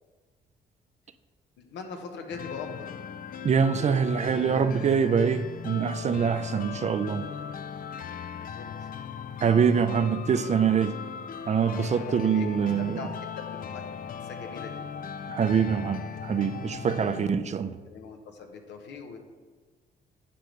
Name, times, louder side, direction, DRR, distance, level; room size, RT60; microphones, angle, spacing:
voice 1, 1.6-2.9 8.3-8.9 11.7-13.9 14.2-14.8 17.9-19.2, left 5 dB, 80° left, 1.0 m, -42 dB
sound 1, 2.3-17.3, left 7 dB, 50° left, 0.4 m, -38 dB
voice 2, 3.4-7.3 9.4-11.0 11.5-13.1 15.3-17.8, right 6 dB, 40° right, 0.4 m, -24 dB
10.0 x 5.2 x 3.3 m
supercardioid pair, 65°, 18 cm